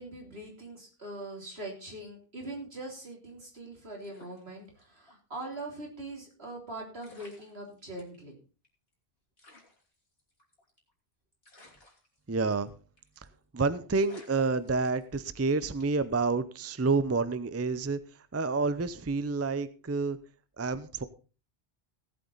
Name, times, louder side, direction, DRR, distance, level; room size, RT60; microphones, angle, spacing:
voice 1, 0.0-8.4, right 2 dB, 80° right, 0 dB, 3.8 m, -42 dB
sound 1, 4.0-5.2 5.5-5.6 6.6-6.7 7.0-8.2 8.6-8.7 8.9-9.0 9.4-10.9 11.4-12.7 13.0-13.3 13.6-13.7 13.9-15.3 15.8-16.1, left 2 dB, 70° left, 3.3 m, -57 dB
voice 2, 12.3-12.7 13.5-18.0 18.3-20.2 20.6-21.0, right 4 dB, 20° right, 14 dB, 0.5 m, -29 dB
17.5 x 8.2 x 4.0 m, 0.34 s
omnidirectional pair, 1.0 m